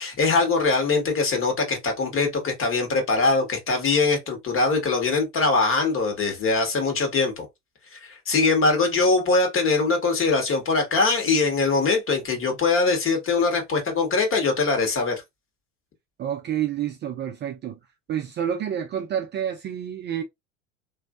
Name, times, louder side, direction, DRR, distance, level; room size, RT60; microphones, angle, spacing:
voice 1, 0.0-7.5 7.9-15.2, left 3 dB, 35° left, 1.5 m, -22 dB
voice 2, 16.2-17.8 18.1-20.2, right 9 dB, 30° right, 0.5 m, -29 dB
3.1 x 2.6 x 2.4 m
hypercardioid pair, 80°, 38 cm